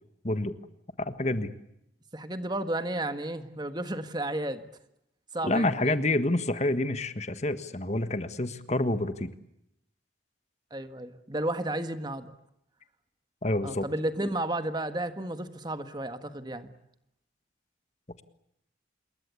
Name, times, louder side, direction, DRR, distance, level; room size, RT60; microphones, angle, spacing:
voice 1, 1.0-1.5 5.4-9.3 13.4-13.8, left 2 dB, 35° left, 11 dB, 1.5 m, -28 dB
voice 2, 2.1-4.6 5.3-6.2 10.7-12.3 13.6-16.7, right 1 dB, 25° right, 10 dB, 1.6 m, -33 dB
27.5 x 22.5 x 8.3 m, 0.80 s
head